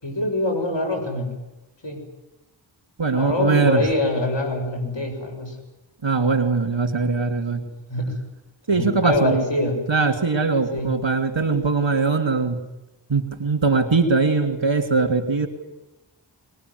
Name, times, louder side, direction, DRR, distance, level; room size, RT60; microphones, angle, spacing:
voice 1, 0.0-1.3 1.8-2.0 3.1-5.6 7.6-8.2 8.7-9.8 10.7-10.9 11.8-11.9, left 2 dB, 70° left, 3 dB, 6.7 m, -24 dB
voice 2, 3.0-3.8 6.0-7.6 8.7-9.4 9.9-12.6 13.1-15.5, right 4 dB, 70° right, 5 dB, 3.2 m, -21 dB
22.5 x 21.0 x 9.7 m, 0.99 s
wide cardioid pair, 40°, 46 cm